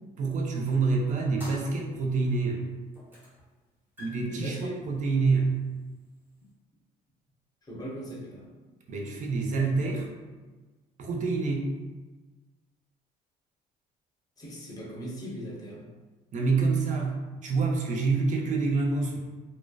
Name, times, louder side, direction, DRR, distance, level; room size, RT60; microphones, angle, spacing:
voice 1, 0.2-2.7 4.0-5.5 8.9-10.1 11.0-11.7 16.3-17.1 17.4-19.2, right 4 dB, 45° right, 1 dB, 0.5 m, -27 dB
sound 1, 1.4-2.4 2.9-3.5 3.7-6.5, left 1 dB, 10° right, 0.7 m, -49 dB
voice 2, 4.2-4.8 7.7-8.5 14.4-15.9, equal, 20° left, -4 dB, 0.6 m, -39 dB
2.6 x 2.1 x 2.2 m, 1.3 s
cardioid pair, 110°, 17 cm